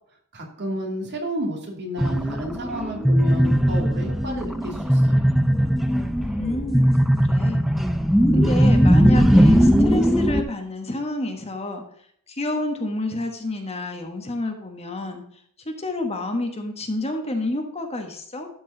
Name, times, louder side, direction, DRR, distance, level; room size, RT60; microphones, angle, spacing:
voice 1, 0.3-5.3, equal, 50° right, 0 dB, 2.6 m, -31 dB
sound 1, 2.0-10.4, equal, ahead, 0.6 m, -19 dB
voice 2, 6.2-6.9 7.2-7.6 8.3-11.8 12.3-15.2 15.6-18.5, left 1 dB, 30° left, 4 dB, 1.2 m, -29 dB
12.0 x 4.7 x 3.9 m, 0.66 s
head